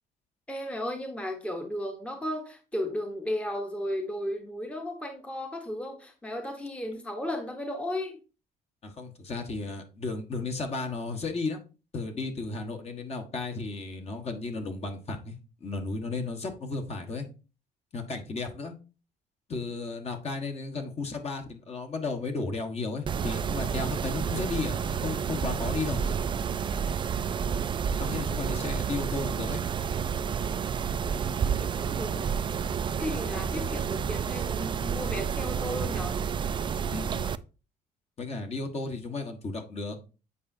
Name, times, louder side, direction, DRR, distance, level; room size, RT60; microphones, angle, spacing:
voice 1, 0.5-8.2 28.4-28.5 31.4-32.3 33.0-36.2, left 1 dB, 5° left, 4 dB, 1.0 m, -35 dB
voice 2, 8.8-11.6 11.9-15.3 15.6-17.3 17.9-18.7 19.5-26.0 28.0-29.6 36.9-37.2 38.2-40.1, left 3 dB, 40° left, 4 dB, 1.4 m, -34 dB
Mechanisms, 23.1-37.4, right 7 dB, 30° right, 0.3 m, -30 dB
8.3 x 5.0 x 2.7 m, 0.33 s
cardioid pair, 110°, 17 cm